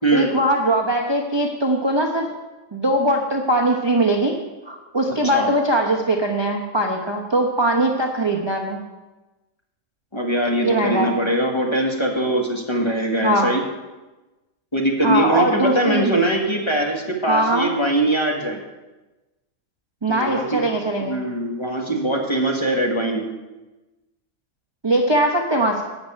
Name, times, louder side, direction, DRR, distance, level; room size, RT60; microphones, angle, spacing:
voice 1, 0.1-2.3 2.7-4.4 4.6-8.8 10.6-11.1 13.2-13.5 15.0-16.2 17.3-17.7 20.0-21.2 24.8-25.8, right 1 dB, 20° right, 0 dB, 0.9 m, -21 dB
voice 2, 10.1-13.6 14.7-18.6 20.1-20.7 21.0-23.3, right 1 dB, 20° left, 0 dB, 1.6 m, -22 dB
13.0 x 5.2 x 8.6 m, 1.1 s
omnidirectional pair, 1.5 m